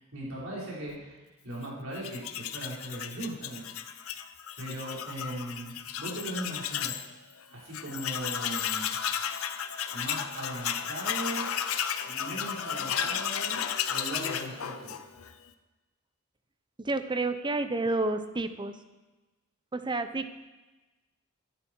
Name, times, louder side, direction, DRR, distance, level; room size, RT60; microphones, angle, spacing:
voice 1, 0.0-3.7 4.0-4.1 4.6-7.0 7.5-9.0 9.9-11.5 12.0-13.6 13.9-14.9, right 1 dB, 65° right, -5 dB, 4.9 m, -38 dB
Tools, 1.9-7.1 7.4-7.5 7.7-15.3, left 9 dB, 90° left, 0.8 m, -33 dB
voice 2, 16.8-18.8 19.7-20.4, right 2 dB, 20° right, 10 dB, 0.7 m, -30 dB
13.5 x 11.0 x 4.6 m, 1.1 s
head